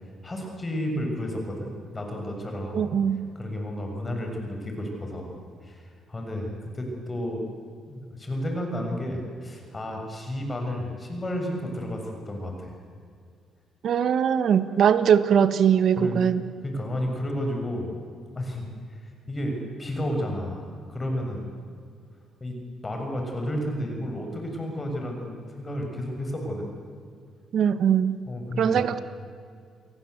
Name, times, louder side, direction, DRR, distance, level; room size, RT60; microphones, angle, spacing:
voice 1, 0.2-2.9 3.4-5.3 5.6-7.4 7.9-12.7 16.0-16.2 16.6-17.9 18.4-21.5 22.4-22.6 22.8-26.7 28.3-28.9, equal, 25° left, 2 dB, 6.9 m, -32 dB
voice 2, 2.7-3.2 13.8-16.4 27.5-28.2 28.6-29.0, right 8 dB, 65° right, 12 dB, 1.6 m, -21 dB
28.5 x 22.5 x 8.2 m, 2.2 s
cardioid pair, 90°, 0 cm